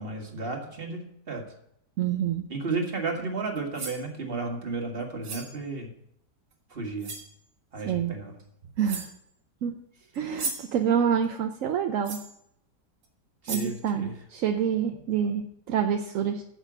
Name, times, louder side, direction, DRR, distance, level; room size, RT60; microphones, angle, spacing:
voice 1, 0.0-1.5 2.5-5.9 6.7-7.1 7.7-8.3 13.4-14.1, right 3 dB, 35° right, 2 dB, 1.8 m, -33 dB
voice 2, 2.0-2.4 7.8-8.1 8.8-9.1 9.6-9.7 10.1-12.2 13.5-16.4, right 8 dB, 60° right, 5 dB, 0.9 m, -27 dB
sound 1, 3.6-4.1 5.2-5.6 6.5-6.6 7.0-7.3 8.4-8.5 8.8-9.2 10.1-10.8 12.0-12.4 13.0-13.1 13.5-13.8, right 4 dB, 90° right, 2.4 m, -36 dB
9.0 x 7.4 x 6.1 m, 0.74 s
omnidirectional pair, 1.9 m